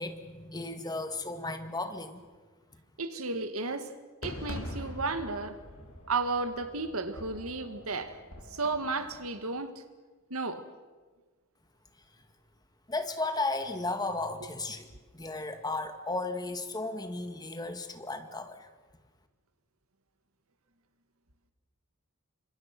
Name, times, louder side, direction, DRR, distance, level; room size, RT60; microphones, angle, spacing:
voice 1, 0.0-2.2 12.9-18.7, left 2 dB, 20° left, 7 dB, 2.0 m, -35 dB
voice 2, 3.0-4.0 4.2-5.6 6.1-8.2 8.5-9.8 10.3-10.6, right 3 dB, 75° right, 9 dB, 2.1 m, -33 dB
Fireworks, 4.2-9.3, left 1 dB, 70° left, 4.3 m, -44 dB
28.5 x 26.0 x 6.1 m, 1.3 s
head